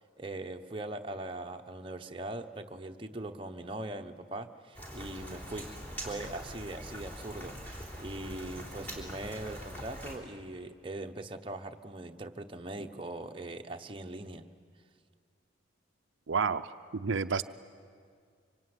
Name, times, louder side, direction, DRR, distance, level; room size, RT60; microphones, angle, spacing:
voice 1, 0.2-5.7 6.0-14.5, right 2 dB, 25° right, 4 dB, 1.0 m, -41 dB
Rain, 4.7-10.2, equal, 10° left, 3.5 m, -43 dB
voice 2, 16.3-16.7 16.9-17.5, right 5 dB, 70° right, 9 dB, 0.6 m, -29 dB
25.0 x 24.5 x 9.7 m, 2.1 s
head